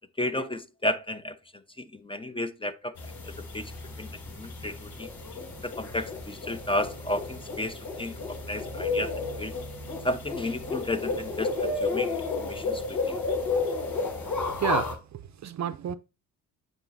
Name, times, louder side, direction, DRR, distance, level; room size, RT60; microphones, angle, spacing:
voice 1, 0.2-3.7 4.0-5.1 5.6-9.5 10.0-13.2, left 1 dB, 15° left, 0.8 m, -33 dB
sound 1, 3.0-14.9, left 3 dB, 50° left, 3.1 m, -32 dB
voice 2, 14.6-15.9, right 9 dB, 50° right, 0.6 m, -31 dB
8.9 x 4.2 x 2.6 m
supercardioid pair, 65°, 38 cm